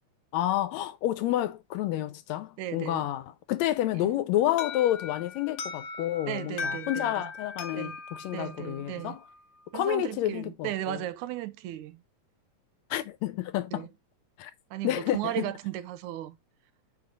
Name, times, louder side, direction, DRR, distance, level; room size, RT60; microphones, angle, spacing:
voice 1, 0.3-3.2 3.5-7.9 8.2-9.2 9.7-11.0 12.9-13.9 14.4-14.5 14.8-15.5, left 13 dB, 80° left, 1.7 m, -29 dB
voice 2, 2.6-3.0 4.0-4.1 6.3-7.3 7.8-7.9 8.3-9.2 9.7-12.0 13.7-13.9 14.7-16.4, right 14 dB, 90° right, 2.0 m, -35 dB
Alarm, 4.6-9.4, left 5 dB, 60° left, 1.2 m, -39 dB
4.9 x 3.9 x 5.2 m
omnidirectional pair, 3.4 m